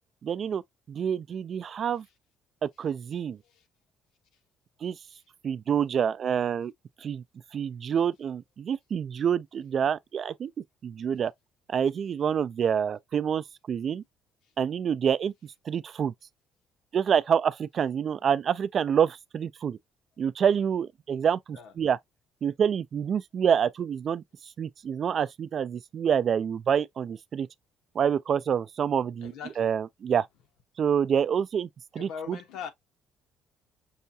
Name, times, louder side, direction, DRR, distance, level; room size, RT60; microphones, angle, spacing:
voice 1, 0.2-0.6 0.9-2.0 2.6-3.4 4.8-5.0 5.4-6.7 7.0-7.2 7.5-11.3 11.7-14.0 14.6-15.3 15.7-16.1 16.9-19.8 20.2-22.0 22.4-24.2 24.6-27.5 27.9-30.3 30.8-32.4, right 8 dB, 50° right, 0.3 m, -27 dB
voice 2, 29.2-29.7 32.0-32.7, left 7 dB, 80° left, 0.9 m, -40 dB
5.6 x 2.3 x 2.6 m
cardioid pair, 105°, 0 cm